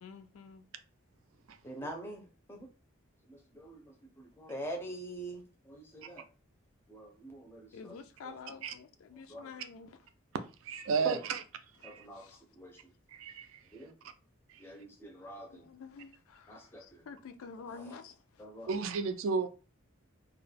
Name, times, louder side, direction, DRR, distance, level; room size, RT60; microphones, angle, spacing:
voice 1, 0.0-0.6 7.7-9.9 12.1-12.4 15.5-18.2, left 5 dB, 85° left, 0.4 m, -49 dB
voice 2, 1.6-2.7 3.3-6.3 6.9-8.4 9.1-9.5 11.0-11.2 11.8-12.9 13.7-13.9 14.6-15.7 16.5-17.0 17.7-18.0 18.4-18.7, right 1 dB, 10° left, 0.4 m, -45 dB
voice 3, 10.6-11.4 11.8-12.1 13.1-13.6 14.5-14.6 18.7-19.5, right 5 dB, 80° right, 0.4 m, -33 dB
2.2 x 2.0 x 3.2 m
head